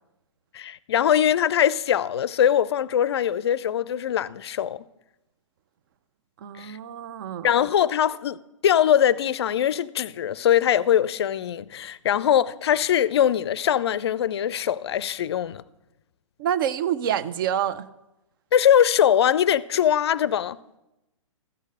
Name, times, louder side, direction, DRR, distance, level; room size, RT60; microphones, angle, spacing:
voice 1, 0.5-4.8 6.6-6.8 7.4-15.6 18.5-20.6, left 10 dB, 50° left, 0.4 m, -22 dB
voice 2, 6.4-7.5 16.4-17.9, right 9 dB, 40° right, 0.5 m, -27 dB
14.0 x 6.4 x 6.4 m
figure-of-eight pair, 125°, 17 cm